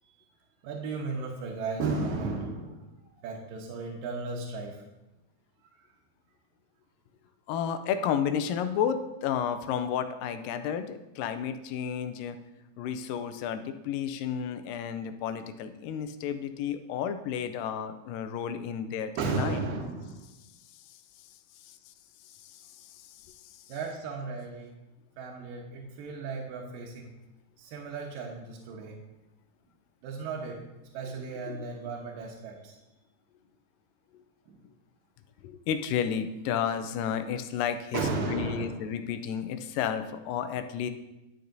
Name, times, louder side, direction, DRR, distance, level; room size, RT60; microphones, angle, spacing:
voice 1, 0.6-2.9 3.2-4.8 19.2-20.3 23.7-24.7 25.2-27.1 27.6-29.0 30.0-30.6 30.9-32.8 34.5-34.6 37.9-38.8, right 4 dB, 75° right, -2 dB, 2.5 m, -34 dB
voice 2, 7.5-12.4 12.8-19.6 20.7-21.0 21.6-21.9 22.3-23.6 31.5-31.7 34.1-34.2 35.4-40.9, left 8 dB, 80° left, 9 dB, 2.1 m, -32 dB
11.5 x 6.7 x 2.6 m, 0.98 s
omnidirectional pair, 4.2 m